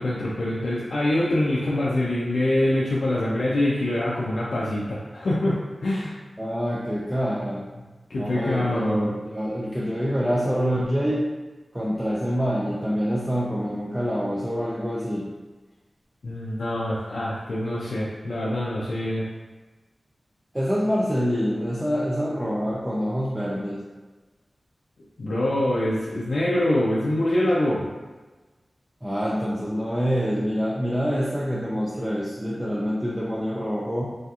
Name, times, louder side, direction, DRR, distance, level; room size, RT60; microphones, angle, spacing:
voice 1, 0.0-6.2 8.1-9.1 16.2-19.3 25.2-27.9, left 1 dB, 85° left, -7 dB, 0.4 m, -24 dB
voice 2, 6.4-7.7 8.2-11.2 11.7-15.3 20.5-23.8 29.0-34.1, equal, 10° right, -6 dB, 0.4 m, -26 dB
2.7 x 2.4 x 2.3 m, 1.3 s
wide cardioid pair, 70°, 0 cm